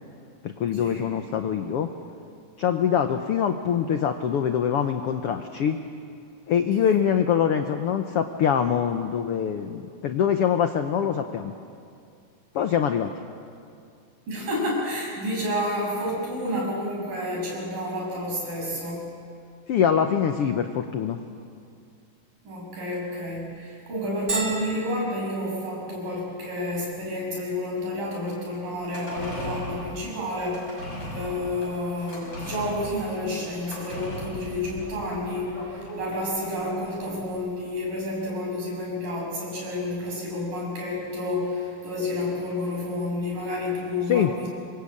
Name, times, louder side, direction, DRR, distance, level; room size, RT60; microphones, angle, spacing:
voice 1, 0.4-1.9 2.6-5.8 6.5-11.5 12.5-13.1 19.7-21.2 44.1-44.3, left 8 dB, 75° left, 7 dB, 1.3 m, -24 dB
voice 2, 14.3-19.2 22.5-44.5, left 1 dB, 80° right, -3 dB, 8.6 m, -30 dB
Bell, 24.3-39.7, right 3 dB, 20° right, 2.6 m, -42 dB
sound 1, 28.7-37.4 37.7-37.8, left 1 dB, 40° left, 6.9 m, -37 dB
26.5 x 22.0 x 8.7 m, 2.4 s
omnidirectional pair, 3.9 m